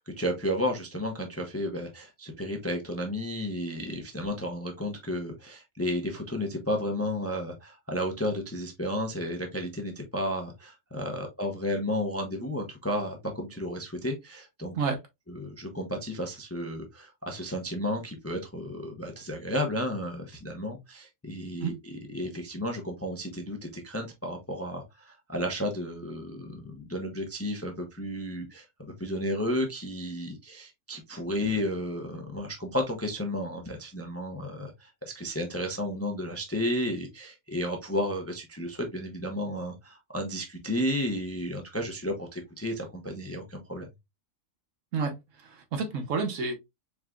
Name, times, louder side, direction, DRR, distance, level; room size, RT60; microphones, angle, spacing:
voice 1, 0.0-14.8 15.3-43.9, left 1 dB, 15° left, 0.5 m, -33 dB
voice 2, 44.9-46.5, right 4 dB, 70° right, 1.3 m, -30 dB
4.8 x 3.5 x 2.3 m
omnidirectional pair, 1.4 m